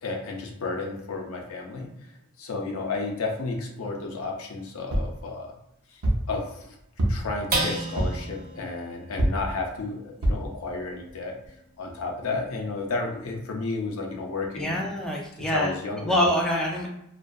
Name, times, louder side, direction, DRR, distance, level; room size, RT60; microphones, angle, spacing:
voice 1, 0.0-1.9 2.4-5.5 5.9-6.0 6.3-6.8 7.1-11.4 11.8-14.9 15.5-16.1, left 3 dB, 70° left, 1 dB, 0.5 m, -32 dB
sound 1, 4.9-5.2 6.0-6.3 7.0-7.4 8.0-8.3 9.2-9.5 10.2-10.5 11.1-11.2 11.4-11.5, right 1 dB, 90° right, 0.6 m, -25 dB
sound 2, 7.5-14.2 14.7-14.8 15.2-15.7, right 2 dB, 40° right, 0.6 m, -36 dB
voice 2, 14.6-16.9, equal, 5° left, -2 dB, 0.3 m, -26 dB
2.5 x 2.3 x 2.3 m, 0.80 s
head